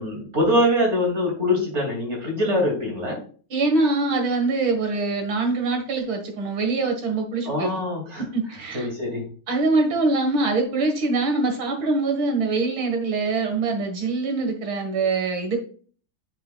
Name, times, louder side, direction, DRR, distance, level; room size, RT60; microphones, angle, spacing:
voice 1, 0.0-3.2 7.4-8.2 8.7-9.3, left 1 dB, 35° right, 1 dB, 3.0 m, -23 dB
voice 2, 3.5-7.8 8.3-8.9 9.5-15.6, right 3 dB, 90° right, 4 dB, 2.5 m, -23 dB
8.7 x 6.3 x 2.4 m, 0.42 s
omnidirectional pair, 2.1 m